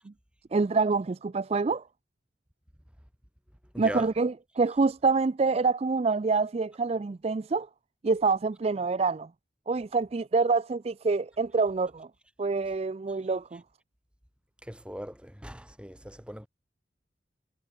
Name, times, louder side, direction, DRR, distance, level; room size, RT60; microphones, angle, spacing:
voice 1, 0.5-1.8 3.8-7.7 8.0-9.3 9.7-12.1 12.4-13.6, right 4 dB, 35° right, 0.4 m, -26 dB
voice 2, 3.7-4.1 14.6-16.5, equal, 5° right, 3.5 m, -39 dB
head